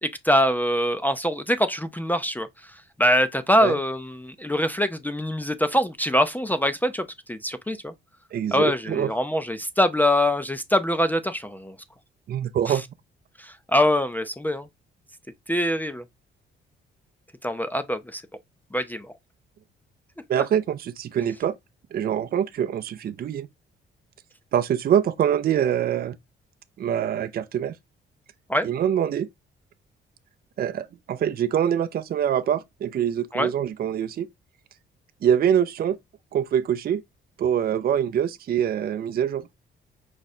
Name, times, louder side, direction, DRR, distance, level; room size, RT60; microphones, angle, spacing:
voice 1, 0.0-7.9 8.5-11.8 12.7-12.8 13.4-14.7 15.5-16.0 17.4-18.2 18.7-19.1 28.5-28.7 33.3-33.5, equal, 10° left, 0.5 m, -24 dB
voice 2, 8.3-9.1 12.3-12.8 20.3-21.5 21.9-23.5 24.5-26.2 26.8-27.7 28.6-29.3 30.6-34.3 35.2-36.0 36.3-37.0 37.4-39.5, right 9 dB, 50° right, 0.5 m, -24 dB
4.9 x 2.1 x 4.1 m
cardioid pair, 90°, 20 cm